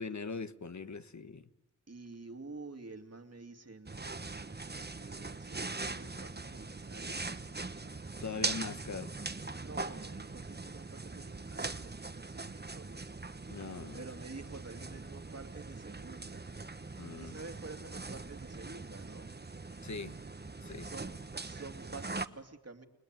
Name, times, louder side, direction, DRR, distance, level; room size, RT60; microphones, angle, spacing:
voice 1, 0.0-1.5 8.2-9.1 13.5-14.0 17.0-17.4 19.8-20.2 20.6-20.9, left 4 dB, 65° left, 1.4 m, -41 dB
voice 2, 1.9-7.3 9.6-13.1 13.9-16.5 17.2-19.3 20.8-22.9, right 3 dB, 50° right, 2.8 m, -49 dB
sound 1, 3.9-22.3, right 3 dB, 30° right, 1.3 m, -41 dB
30.0 x 21.0 x 9.2 m
wide cardioid pair, 65°, 31 cm